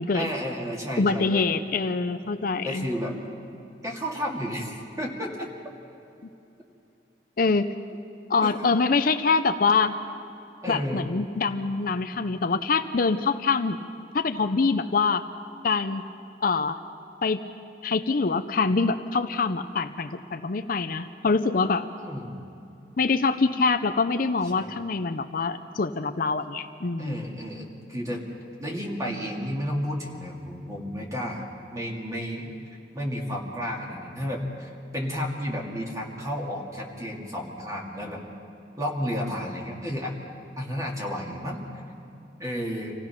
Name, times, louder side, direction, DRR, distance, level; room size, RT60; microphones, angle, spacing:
voice 1, 0.1-1.5 2.6-3.2 3.8-5.5 8.4-8.7 10.6-11.1 22.0-22.4 24.5-24.8 27.0-28.2 28.6-31.4 31.7-32.5 32.9-38.2 38.8-40.2 40.6-41.8 42.4-42.9, equal, 20° right, -1 dB, 2.4 m, -32 dB
voice 2, 1.0-2.9 7.4-7.7 8.3-9.9 10.7-13.8 14.1-15.2 15.6-16.0 16.4-16.8 17.2-17.4 17.8-21.9 23.0-27.3, left 4 dB, 50° left, 9 dB, 0.6 m, -24 dB
26.5 x 16.5 x 5.9 m, 2.7 s
head